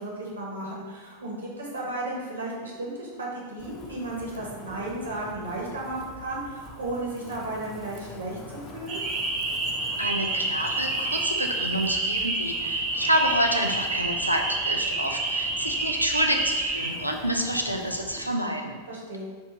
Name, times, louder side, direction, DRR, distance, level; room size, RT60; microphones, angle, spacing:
voice 1, 0.0-9.0 18.9-19.2, right 2 dB, 70° right, -3 dB, 0.9 m, -34 dB
Wind, 3.6-18.3, left 3 dB, 25° left, 0.4 m, -45 dB
sound 1, 8.9-16.9, right 2 dB, 40° right, 0.6 m, -28 dB
voice 2, 10.0-18.8, equal, 90° right, 3 dB, 0.3 m, -28 dB
4.4 x 2.4 x 2.9 m, 1.4 s
figure-of-eight pair, 90°, 0 cm